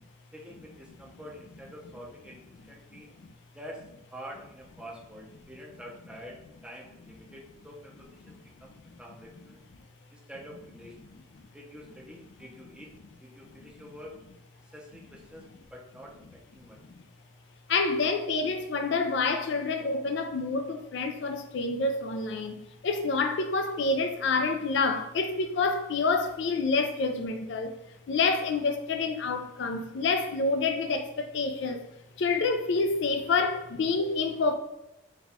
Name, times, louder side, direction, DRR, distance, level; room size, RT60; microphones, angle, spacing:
voice 1, 0.3-3.1 3.5-9.6 10.1-11.2 11.5-12.9 13.2-14.2 14.6-16.8, equal, 5° right, 0.6 m, -47 dB
voice 2, 17.7-22.5 22.8-27.7 28.1-31.8 32.2-34.5, left 4 dB, 60° left, 0.4 m, -27 dB
4.1 x 2.3 x 4.1 m
head